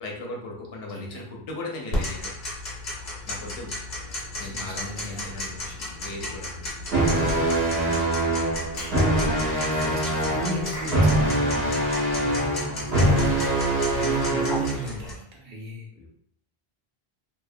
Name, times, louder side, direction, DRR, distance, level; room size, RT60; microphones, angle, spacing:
voice 1, 0.0-2.3 3.3-3.7 4.4-5.5 6.0-6.6 7.8-8.5 16.0-16.1, left 2 dB, 75° left, 0 dB, 0.8 m, -37 dB
voice 2, 0.9-1.2 4.3-5.8 9.4-11.8 12.2-13.3 13.9-15.9, equal, 60° right, -1 dB, 0.7 m, -36 dB
Tick-tock, 1.9-15.1, left 1 dB, 50° left, 0.8 m, -34 dB
sound 1, 6.9-14.9, right 1 dB, 85° right, 1.1 m, -23 dB
Clapping / Chirp tweet, 8.8-9.1 10.7-11.1, equal, 25° left, 0.5 m, -39 dB
2.5 x 2.0 x 2.6 m, 0.65 s
omnidirectional pair, 1.0 m